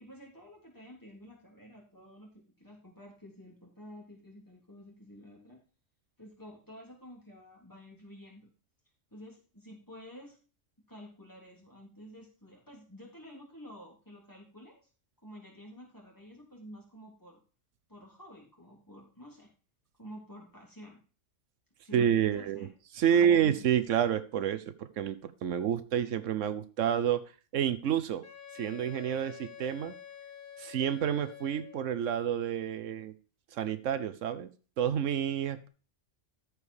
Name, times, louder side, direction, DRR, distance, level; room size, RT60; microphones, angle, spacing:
voice 1, 0.0-5.6 6.2-8.5 9.1-10.4 10.9-14.8 15.2-17.4 17.9-19.5 20.0-21.0 21.8-22.7 23.1-23.5, equal, 15° left, -3 dB, 3.4 m, -51 dB
voice 2, 21.9-22.7 22.9-27.2 27.5-28.2 28.5-29.9 30.6-33.2 33.5-34.5 34.8-35.7, right 9 dB, 85° right, 13 dB, 1.1 m, -29 dB
Wind instrument woodwind instrument, 28.2-32.0, left 9 dB, 50° left, 1.2 m, -48 dB
13.5 x 5.1 x 4.8 m, 0.37 s
omnidirectional pair, 1.3 m